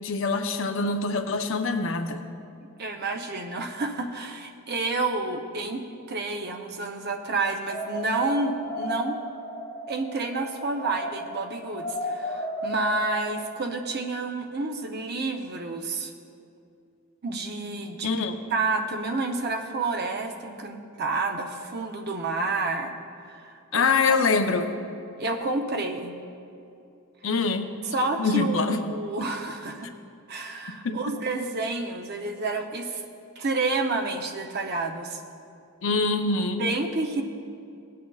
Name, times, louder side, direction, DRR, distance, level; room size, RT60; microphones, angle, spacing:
voice 1, 0.0-2.2 18.0-18.4 23.7-24.7 27.2-27.7 28.2-28.8 29.2-29.3 30.8-31.0 35.8-36.6, left 4 dB, 60° left, 6 dB, 0.6 m, -24 dB
voice 2, 2.8-5.8 6.1-9.2 9.9-16.1 17.2-18.1 18.5-23.9 25.2-26.2 27.9-29.9 30.3-33.0 33.4-35.2 36.6-37.2, right 3 dB, 45° right, 4 dB, 0.7 m, -29 dB
sound 1, 7.7-13.4, left 1 dB, 30° left, 2.5 m, -34 dB
16.5 x 8.5 x 2.3 m, 2.6 s
head